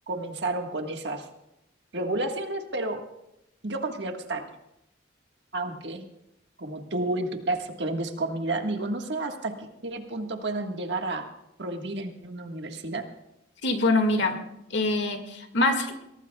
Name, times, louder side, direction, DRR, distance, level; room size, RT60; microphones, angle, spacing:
voice 1, 0.1-1.3 1.9-3.0 3.6-4.4 5.5-6.0 6.6-11.3 11.6-13.0, right 2 dB, 65° right, 4 dB, 1.6 m, -31 dB
voice 2, 13.6-14.4 14.7-15.9, left 2 dB, 70° left, 5 dB, 2.0 m, -24 dB
22.5 x 18.0 x 2.3 m, 0.84 s
head